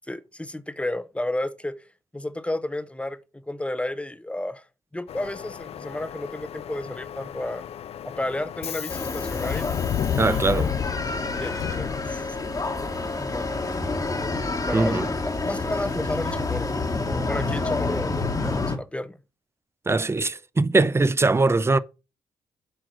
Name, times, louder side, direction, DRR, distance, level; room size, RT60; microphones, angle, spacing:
voice 1, 0.1-1.8 2.1-4.6 4.9-7.6 8.0-9.7 11.4-12.3 13.2-13.6 14.6-19.2, left 1 dB, 10° left, 0.9 m, -32 dB
Subway metro underground, 5.1-12.5, left 9 dB, 60° left, 0.4 m, -32 dB
sound 1, 8.9-18.8, left 3 dB, 30° left, 1.6 m, -28 dB
voice 2, 10.2-10.7 14.7-15.1 19.9-21.8, right 3 dB, 20° right, 0.7 m, -21 dB
7.9 x 4.7 x 6.2 m
supercardioid pair, 60°, 12 cm